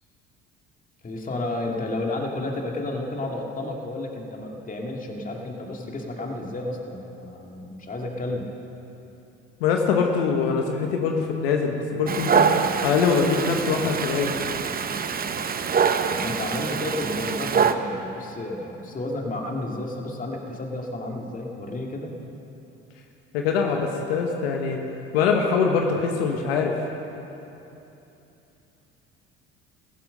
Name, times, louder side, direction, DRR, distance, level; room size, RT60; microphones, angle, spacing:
voice 1, 1.0-8.5 16.1-22.1, left 2 dB, 25° left, 0 dB, 2.3 m, -32 dB
voice 2, 9.6-12.5 12.8-14.3 23.3-24.8 25.1-26.7, left 5 dB, 85° left, 2 dB, 1.3 m, -23 dB
Dog, 12.1-17.7, right 6 dB, 30° right, 0.8 m, -24 dB
14.5 x 11.0 x 6.6 m, 2.9 s
hypercardioid pair, 70°, 30 cm